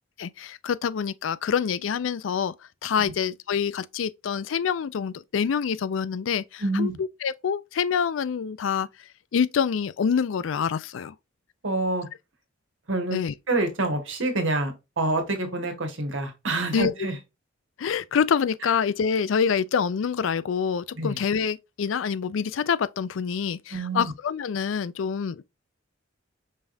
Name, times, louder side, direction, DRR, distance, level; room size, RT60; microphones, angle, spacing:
voice 1, 0.2-2.5 2.8-8.9 9.3-11.1 13.1-13.3 16.7-16.9 17.8-25.4, left 6 dB, 80° left, 0.4 m, -26 dB
voice 2, 6.6-7.0 11.6-12.1 12.9-13.2 13.5-17.1 21.0-21.2 23.7-24.1, right 2 dB, 75° right, 1.5 m, -27 dB
5.3 x 3.5 x 2.5 m
head